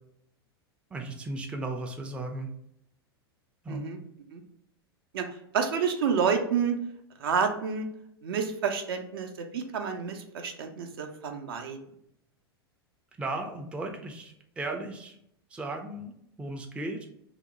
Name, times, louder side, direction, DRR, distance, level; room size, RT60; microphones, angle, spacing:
voice 1, 0.9-2.5 3.6-3.9 13.2-15.2 15.5-16.1 16.4-17.1, right 2 dB, 10° right, 3 dB, 0.4 m, -35 dB
voice 2, 3.7-4.0 4.3-4.4 5.1-5.3 5.5-6.8 7.2-7.9 8.2-11.8, right 6 dB, 65° right, 5 dB, 0.5 m, -29 dB
2.8 x 2.0 x 3.9 m, 0.75 s
figure-of-eight pair, 90°, 13 cm